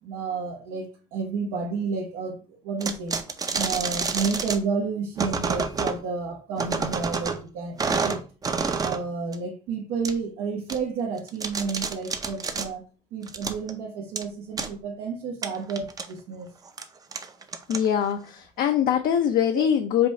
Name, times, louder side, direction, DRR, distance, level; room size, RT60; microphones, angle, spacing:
voice 1, 0.0-3.2 3.5-8.2 8.8-12.8 13.1-16.5 19.5-19.6, right 5 dB, 85° right, 1.2 m, -31 dB
sound 1, 2.8-4.6 5.2-6.0 6.6-7.4 7.8-9.0 9.3-9.4 10.0-10.1 10.7-10.8 11.2-12.7 13.2-13.7 14.2-14.3 14.6-14.7 15.4-16.0 16.7-16.8 17.1-18.1, right 4 dB, 25° right, 0.5 m, -28 dB
voice 2, 17.7-20.1, left 9 dB, 70° left, 0.5 m, -23 dB
5.1 x 2.4 x 4.1 m
cardioid pair, 115°, 16 cm